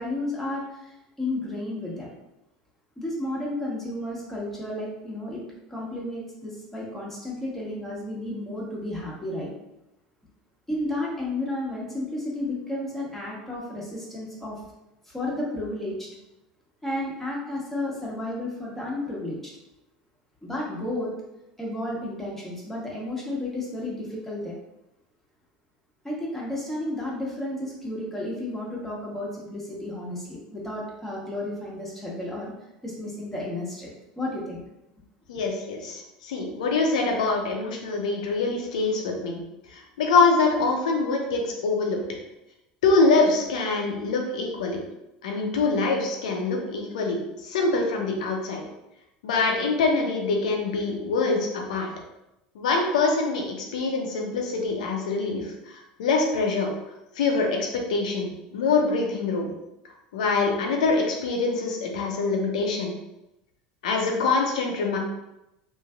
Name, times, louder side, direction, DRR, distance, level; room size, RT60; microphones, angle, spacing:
voice 1, 0.0-2.1 3.0-5.4 5.7-9.5 10.7-14.6 15.0-16.1 16.8-19.4 20.4-21.1 21.6-24.6 26.0-32.5 32.8-34.6 35.3-35.4, left 1 dB, 5° left, -5 dB, 1.1 m, -32 dB
voice 2, 35.3-39.4 39.7-42.0 42.8-44.8 45.2-48.6 49.2-51.9 52.5-56.7 57.1-59.5 60.1-62.9 63.8-65.0, left 3 dB, 80° left, 1 dB, 0.6 m, -24 dB
3.1 x 2.6 x 2.3 m, 0.91 s
hypercardioid pair, 85°, 4 cm